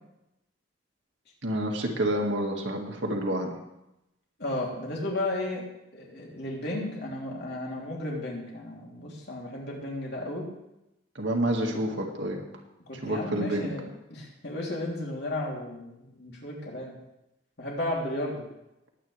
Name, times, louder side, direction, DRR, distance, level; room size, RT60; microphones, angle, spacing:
voice 1, 1.4-3.6 11.2-12.4 13.0-13.7, right 1 dB, 70° right, 1 dB, 2.0 m, -28 dB
voice 2, 4.4-5.7 5.9-10.5 12.9-17.0 17.6-18.4, left 1 dB, 60° left, -3 dB, 3.2 m, -34 dB
20.5 x 8.8 x 3.4 m, 0.90 s
head